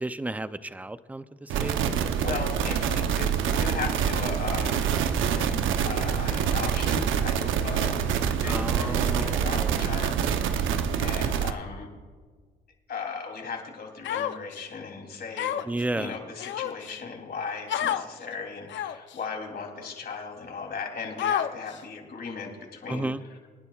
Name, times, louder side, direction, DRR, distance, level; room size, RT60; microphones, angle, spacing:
voice 1, 0.0-1.8 8.5-9.8 15.7-16.1 22.9-23.2, right 2 dB, 10° right, 13 dB, 0.5 m, -32 dB
sound 1, 1.5-11.5, right 8 dB, 80° right, 0.8 m, -26 dB
voice 2, 1.7-4.9 5.3-8.0 8.4-10.2 10.5-10.6 11.0-11.9 12.9-15.6 15.9-23.4, left 5 dB, 50° left, 2 dB, 3.2 m, -37 dB
Human voice, 14.0-14.7 15.4-15.8 16.4-17.0 17.7-18.1 18.7-19.1 19.8-19.9 21.2-21.8, left 10 dB, 70° left, 0.6 m, -29 dB
26.5 x 10.5 x 2.4 m, 1.5 s
cardioid pair, 90°, 20 cm